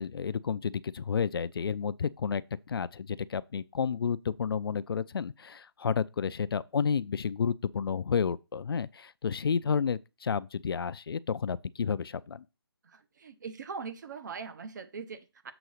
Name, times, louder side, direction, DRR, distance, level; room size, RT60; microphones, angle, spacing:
voice 1, 0.0-2.4 2.7-12.4, left 6 dB, 60° left, 0.4 m, -31 dB
voice 2, 12.8-15.5, right 5 dB, 45° right, 0.9 m, -41 dB
6.9 x 3.9 x 6.4 m
hypercardioid pair, 165°, 14 cm